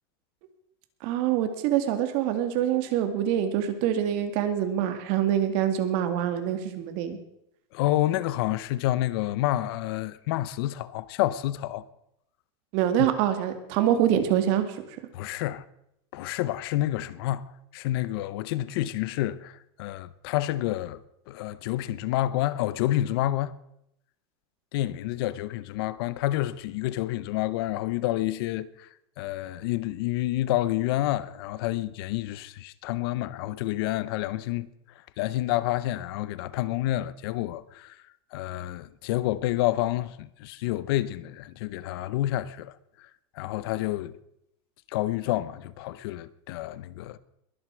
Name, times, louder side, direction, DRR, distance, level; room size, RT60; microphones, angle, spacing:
voice 1, 1.0-7.2 12.7-15.0, right 10 dB, 50° right, 2.1 m, -25 dB
voice 2, 7.7-11.8 15.1-15.6 16.1-17.4 17.7-23.6 24.7-28.9 29.2-34.7 35.2-38.0 38.3-43.1 43.3-44.2 44.9-47.2, left 15 dB, 60° left, 0.8 m, -29 dB
21.5 x 7.9 x 6.2 m
supercardioid pair, 160°, 14 cm